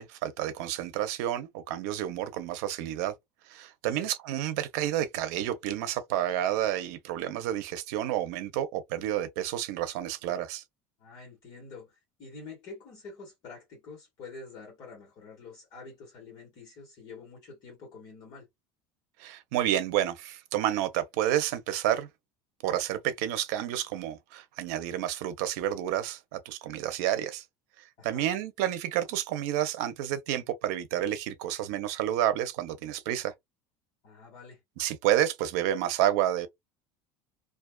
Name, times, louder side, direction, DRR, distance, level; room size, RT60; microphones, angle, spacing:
voice 1, 0.0-3.1 3.5-10.6 19.2-22.1 22.6-27.4 28.0-33.3 34.8-36.5, right 12 dB, 80° right, 0.6 m, -30 dB
voice 2, 11.0-18.5 28.0-28.3 34.0-34.6, left 4 dB, 50° left, 1.4 m, -47 dB
2.5 x 2.3 x 2.2 m
cardioid pair, 150°, 9 cm